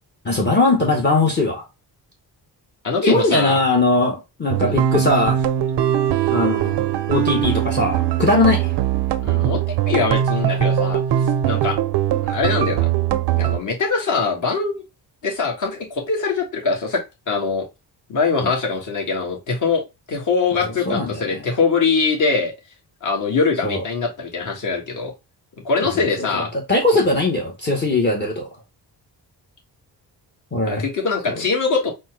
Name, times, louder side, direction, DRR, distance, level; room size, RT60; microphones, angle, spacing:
voice 1, 0.2-1.6 3.0-5.4 6.3-6.8 7.1-8.7 20.9-21.4 23.6-23.8 25.8-28.5 30.5-30.8 31.3-31.4, left 2 dB, 25° left, 0.9 m, -20 dB
voice 2, 2.8-3.6 4.6-4.8 9.2-11.0 11.4-11.8 12.2-12.9 13.4-14.7 15.2-17.7 18.1-19.8 20.1-22.5 23.0-25.1 25.6-26.5 26.9-27.0 30.7-31.9, left 4 dB, 50° left, 1.6 m, -22 dB
sound 1, 4.5-13.6, right 11 dB, 85° right, 0.6 m, -21 dB
4.3 x 2.1 x 4.5 m
wide cardioid pair, 140°, 40 cm